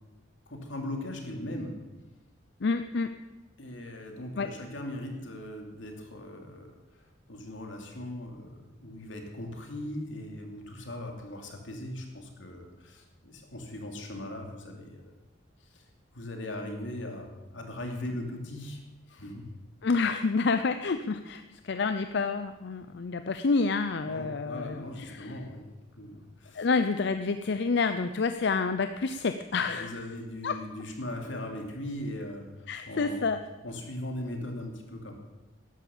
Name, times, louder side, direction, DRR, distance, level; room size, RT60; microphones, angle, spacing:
voice 1, 0.5-1.8 3.6-15.0 15.7-15.8 16.1-18.8 19.1-19.5 24.1-25.7 25.9-26.7 29.6-33.3 33.6-35.1, left 1 dB, 85° left, 3 dB, 2.7 m, -39 dB
voice 2, 2.6-3.1 4.4-4.5 19.8-25.4 26.5-30.0 30.4-30.6 32.7-33.4, left 4 dB, 65° left, 9 dB, 0.6 m, -28 dB
12.5 x 11.0 x 7.2 m, 1.1 s
head